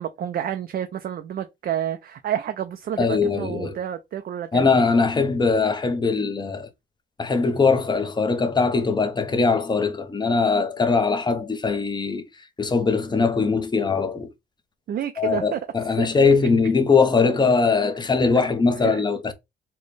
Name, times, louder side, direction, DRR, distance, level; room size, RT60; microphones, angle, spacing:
voice 1, 0.0-4.8 14.9-15.6 16.0-16.3 18.8-19.0, right 10 dB, 50° right, 0.4 m, -29 dB
voice 2, 3.0-3.8 4.5-6.7 7.2-12.2 12.6-14.3 15.2-19.3, left 4 dB, 20° left, 0.7 m, -21 dB
4.2 x 2.2 x 3.2 m
cardioid pair, 90°, 20 cm